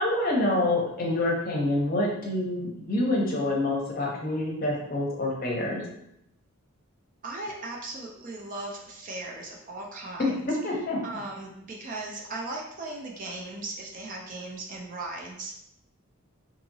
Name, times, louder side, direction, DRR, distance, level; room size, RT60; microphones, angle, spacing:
voice 1, 0.0-5.8 10.2-10.3 10.6-11.0, left 2 dB, 40° left, -2 dB, 0.7 m, -27 dB
voice 2, 7.2-10.6 11.0-15.5, right 2 dB, 35° right, -1 dB, 0.4 m, -37 dB
2.8 x 2.8 x 2.7 m, 0.79 s
head